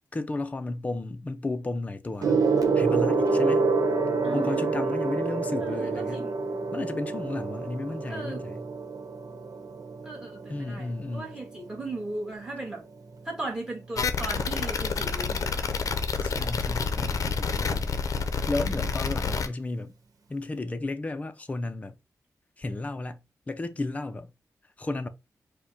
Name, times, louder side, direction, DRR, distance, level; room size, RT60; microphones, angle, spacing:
voice 1, 0.1-2.4 2.7-3.6 4.3-6.3 6.7-8.6 10.5-11.4 16.2-17.9 18.5-19.9 20.3-22.0 22.6-23.2 23.5-24.3 24.8-25.1, left 2 dB, 25° left, 0.5 m, -33 dB
Gong, 2.2-12.0 12.9-13.2, right 4 dB, 85° right, 1.0 m, -27 dB
voice 2, 4.2-4.6 5.6-6.4 8.1-8.4 10.0-12.8 13.2-15.6 18.7-18.9, right 2 dB, 10° right, 1.6 m, -37 dB
sound 1, 14.0-19.5, left 5 dB, 65° left, 0.6 m, -28 dB
4.8 x 2.2 x 4.7 m
wide cardioid pair, 165°, 6 cm